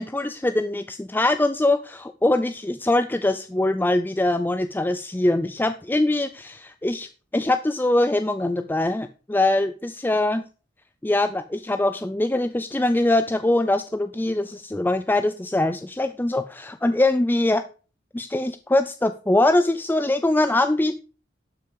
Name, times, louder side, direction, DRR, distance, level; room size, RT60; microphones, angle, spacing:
voice 1, 0.0-10.4 11.0-17.6 18.1-21.0, left 2 dB, 10° left, 9 dB, 0.4 m, -23 dB
11.5 x 6.3 x 5.0 m, 0.36 s
head